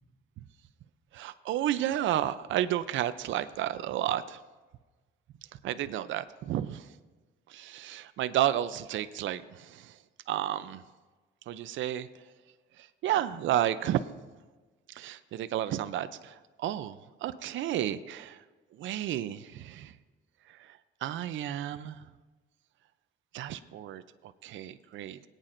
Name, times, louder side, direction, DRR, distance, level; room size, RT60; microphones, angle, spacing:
voice 1, 1.1-4.4 5.6-6.9 7.5-9.9 10.3-10.8 11.5-12.1 12.8-14.0 14.9-18.4 18.7-19.9 20.5-22.0 23.3-25.2, right 12 dB, 75° right, 12 dB, 0.5 m, -32 dB
21.0 x 9.0 x 2.6 m, 1.3 s
cardioid pair, 90°, 20 cm